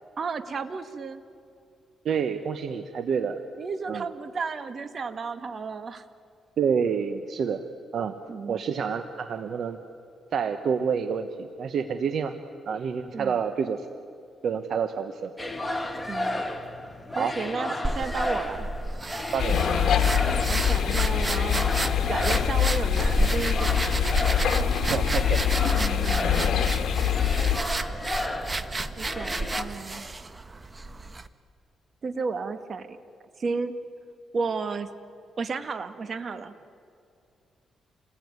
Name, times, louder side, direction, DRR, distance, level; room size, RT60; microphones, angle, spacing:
voice 1, 0.2-1.2 3.6-6.0 8.3-8.6 13.1-13.4 16.1-16.4 17.1-18.7 20.5-21.7 22.1-24.0 25.7-26.6 29.0-30.1 32.0-33.0 33.4-33.7 34.3-34.9 35.4-36.5, right 4 dB, 50° right, 9 dB, 1.8 m, -33 dB
voice 2, 2.0-3.4 3.9-4.0 6.6-7.7 7.9-8.1 8.5-9.8 10.3-12.4 12.7-13.8 14.4-15.3 17.2-17.4 19.3-19.6 24.8-25.4, right 6 dB, 65° right, 9 dB, 1.2 m, -28 dB
sound 1, 15.4-29.6, left 1 dB, 10° left, 2.5 m, -34 dB
sound 2, 17.8-31.3, right 2 dB, 25° right, 1.2 m, -32 dB
sound 3, 19.4-27.6, left 8 dB, 70° left, 2.1 m, -24 dB
28.5 x 20.0 x 9.7 m, 2.6 s
cardioid pair, 90°, 0 cm